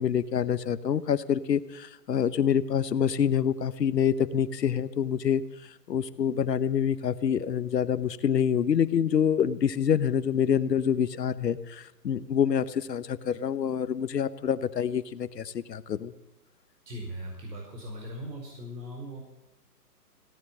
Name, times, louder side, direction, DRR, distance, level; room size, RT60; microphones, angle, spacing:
voice 1, 0.0-5.4 5.9-16.1, left 8 dB, 80° left, 15 dB, 1.1 m, -26 dB
voice 2, 16.9-19.2, equal, 80° right, 0 dB, 5.2 m, -39 dB
17.0 x 9.6 x 7.5 m, 0.91 s
hypercardioid pair, 165°, 49 cm